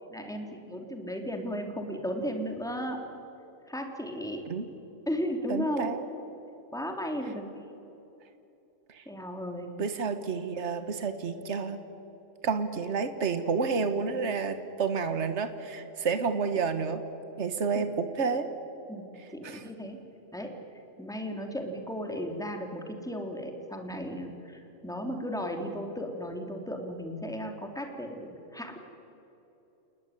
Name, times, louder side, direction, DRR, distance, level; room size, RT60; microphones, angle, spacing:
voice 1, 0.0-3.0 3.7-4.5 5.1-5.9 6.7-7.5 9.1-9.7 16.7-16.8 17.7-17.8 18.9-20.0 20.3-20.5 21.0-28.8, equal, 5° left, 3 dB, 2.9 m, -35 dB
voice 2, 5.5-6.1 8.9-9.0 9.8-11.8 12.4-17.0 17.4-18.5 19.4-19.6, right 5 dB, 55° right, 9 dB, 1.8 m, -30 dB
29.5 x 19.0 x 10.0 m, 3.0 s
omnidirectional pair, 1.4 m